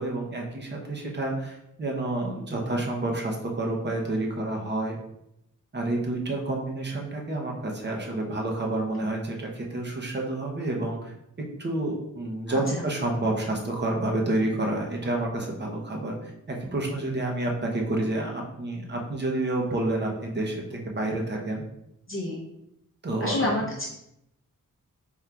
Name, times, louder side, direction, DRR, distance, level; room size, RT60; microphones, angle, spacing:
voice 1, 0.0-5.0 5.7-11.1 11.6-21.6 23.0-23.3, right 2 dB, 35° right, 0 dB, 0.7 m, -29 dB
voice 2, 12.5-12.9 22.1-22.4 23.2-23.8, left 1 dB, 40° left, -3 dB, 0.6 m, -29 dB
3.7 x 2.3 x 4.3 m, 0.82 s
wide cardioid pair, 165°, 32 cm